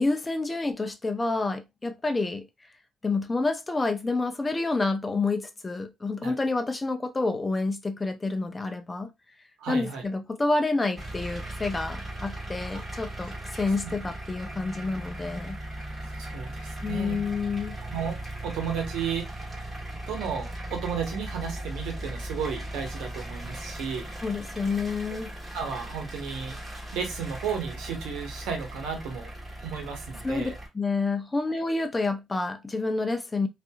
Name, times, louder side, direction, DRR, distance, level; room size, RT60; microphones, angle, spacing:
voice 1, 0.0-2.5 3.0-9.1 9.7-15.6 16.8-17.7 24.2-25.3 30.2-33.5, left 3 dB, 20° left, 0.4 m, -28 dB
voice 2, 9.6-10.0 12.7-12.8 13.8-13.9 16.1-17.2 17.9-19.7 20.1-24.1 25.5-26.6 26.9-29.3 29.6-30.5, right 6 dB, 90° right, 0.9 m, -33 dB
sound 1, 11.0-30.7, right 1 dB, 15° right, 1.4 m, -38 dB
2.7 x 2.5 x 2.3 m
cardioid pair, 90°, 0 cm